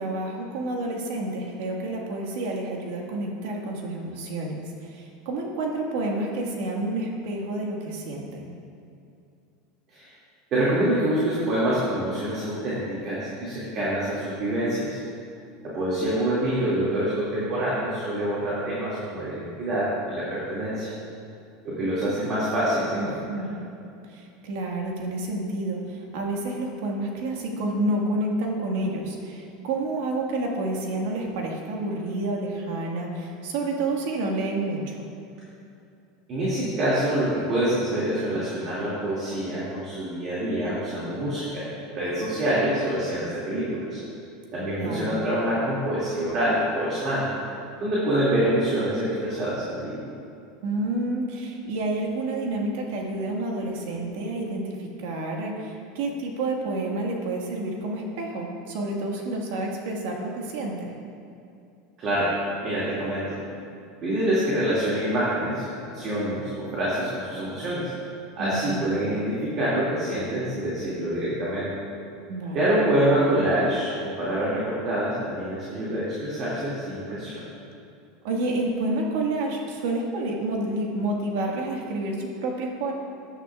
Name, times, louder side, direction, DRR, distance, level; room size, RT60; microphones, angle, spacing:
voice 1, 0.0-8.5 22.9-23.7 24.1-34.9 44.8-45.2 50.6-60.9 68.4-69.0 72.3-72.6 78.2-82.9, right 2 dB, 70° right, 0 dB, 1.7 m, -29 dB
voice 2, 10.5-15.0 15.6-20.9 21.6-23.2 36.3-41.7 41.9-44.0 44.5-47.3 47.8-50.0 62.0-62.3 62.6-63.4 64.0-67.9 68.4-71.7 72.5-77.4, right 1 dB, 35° right, -8 dB, 2.4 m, -26 dB
15.0 x 9.8 x 2.4 m, 2.5 s
supercardioid pair, 160°, 0 cm